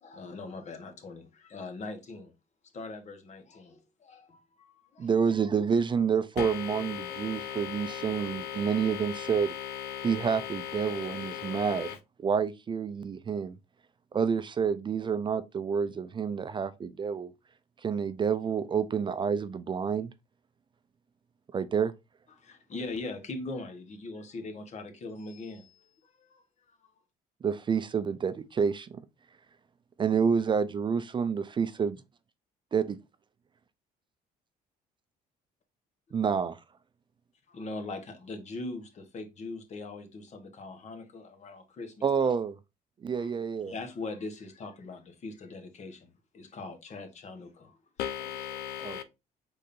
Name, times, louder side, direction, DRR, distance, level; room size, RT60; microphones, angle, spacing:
voice 1, 0.0-2.3 2.7-5.3 8.1-8.4 22.3-26.8 37.5-42.3 43.1-43.3 43.6-47.8, left 3 dB, 45° left, 1.3 m, -41 dB
voice 2, 5.0-9.5 10.0-11.9 12.2-13.6 14.1-17.3 17.8-20.1 21.5-21.9 27.4-29.0 30.0-32.0 32.7-33.0 36.1-36.6 42.0-42.6 43.0-43.7 48.8-49.0, right 6 dB, 30° right, 0.4 m, -28 dB
voice 3, 6.4-12.0 48.0-49.0, left 10 dB, 85° left, 0.7 m, -37 dB
5.2 x 3.8 x 2.6 m
cardioid pair, 110°, 17 cm